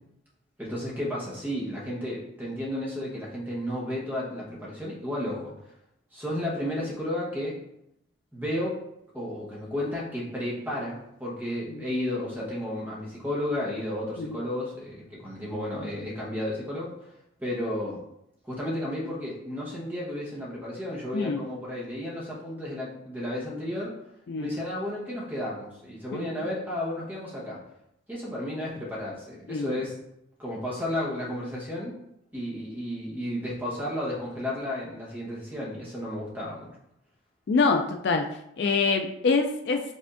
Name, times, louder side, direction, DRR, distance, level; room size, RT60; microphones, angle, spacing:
voice 1, 0.6-5.5 6.1-7.6 8.3-8.8 9.1-17.1 17.4-18.0 18.4-23.9 24.4-27.6 28.1-30.0 30.4-31.9 32.3-36.7, left 1 dB, 10° right, -6 dB, 1.1 m, -33 dB
voice 2, 21.1-21.4 24.3-24.5 26.1-26.2 29.5-29.8 37.5-38.3 38.6-39.8, left 4 dB, 55° left, 5 dB, 0.3 m, -25 dB
5.4 x 3.5 x 2.6 m, 0.79 s
head